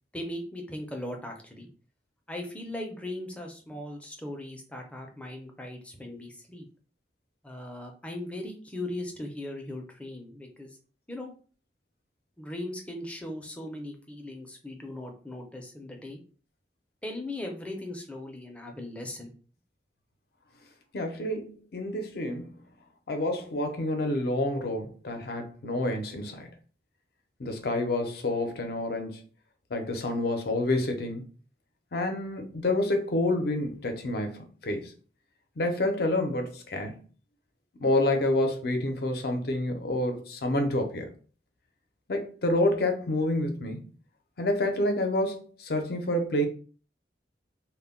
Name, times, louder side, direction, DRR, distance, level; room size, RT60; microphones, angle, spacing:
voice 1, 0.1-1.7 2.3-6.6 7.4-10.7 11.1-11.3 12.4-16.2 17.0-19.3, left 1 dB, 5° left, 0.5 m, -38 dB
voice 2, 20.9-22.6 23.1-26.5 27.4-29.2 29.7-31.2 31.9-34.9 35.6-37.0 37.8-41.1 42.1-43.8 44.4-46.5, left 1 dB, 60° left, 0.5 m, -28 dB
2.2 x 2.1 x 3.5 m
head